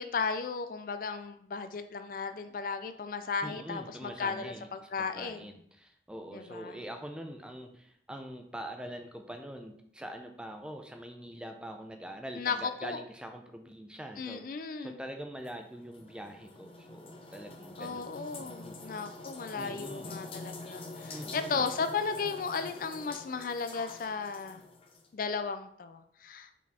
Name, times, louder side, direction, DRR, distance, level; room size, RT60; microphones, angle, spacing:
voice 1, 0.0-5.4 6.3-6.8 12.4-13.0 14.2-15.0 17.8-24.6 25.1-26.5, left 5 dB, 50° left, 9 dB, 0.4 m, -35 dB
voice 2, 3.4-4.7 5.0-18.1 18.4-18.8 19.6-20.2 21.1-21.7, equal, 5° right, 4 dB, 0.5 m, -44 dB
sound 1, 15.5-25.1, left 2 dB, 30° left, 0.8 m, -46 dB
5.9 x 4.0 x 4.2 m, 0.69 s
head